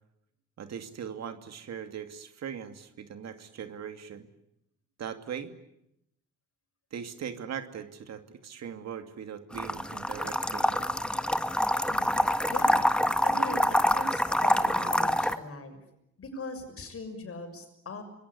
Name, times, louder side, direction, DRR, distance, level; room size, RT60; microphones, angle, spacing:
voice 1, 0.6-4.3 5.0-5.5 6.9-10.9, right 8 dB, 60° right, 8 dB, 2.6 m, -40 dB
sound 1, 9.5-15.4, left 1 dB, 5° left, 1.6 m, -26 dB
voice 2, 11.9-15.8 16.2-18.0, left 2 dB, 50° left, 7 dB, 6.5 m, -40 dB
26.0 x 21.0 x 9.9 m, 0.82 s
cardioid pair, 90°, 30 cm